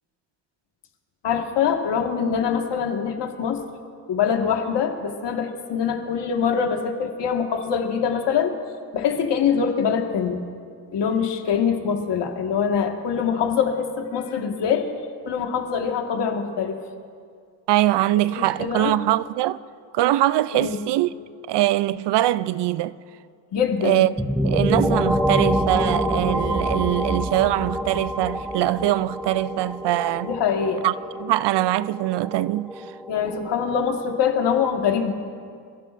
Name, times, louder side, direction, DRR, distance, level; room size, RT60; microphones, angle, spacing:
voice 1, 1.2-3.6 4.1-8.5 8.9-10.4 10.9-14.9 15.2-16.8 18.4-19.0 20.5-20.8 23.5-24.1 30.2-30.8 33.1-35.1, left 7 dB, 70° left, 1.8 m, -24 dB
voice 2, 17.7-19.6 19.9-21.1 21.5-23.0 23.8-24.1 24.4-30.3 30.8-32.9, right 15 dB, 75° right, 0.6 m, -22 dB
sound 1, 24.2-33.7, equal, ahead, 1.0 m, -26 dB
27.0 x 15.5 x 2.6 m
cardioid pair, 85°, 43 cm